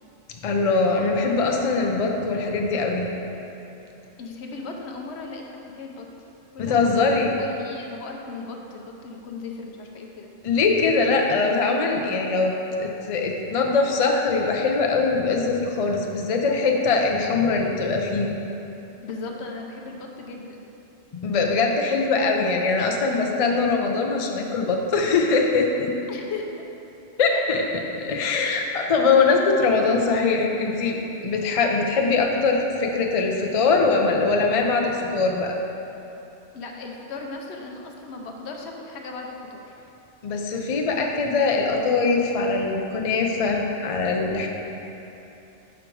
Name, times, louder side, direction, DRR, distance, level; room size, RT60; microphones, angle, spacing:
voice 1, 0.4-3.1 6.6-7.3 10.4-12.5 12.8-18.3 21.1-25.9 27.2-31.0 31.2-35.6 40.2-44.5, left 4 dB, 50° left, 1 dB, 0.4 m, -22 dB
voice 2, 4.2-6.1 6.5-7.1 7.4-10.3 19.0-20.6 26.1-26.5 27.5-27.6 36.5-39.7, left 3 dB, 70° left, 1 dB, 0.9 m, -37 dB
5.8 x 5.1 x 4.6 m, 3.0 s
omnidirectional pair, 1.2 m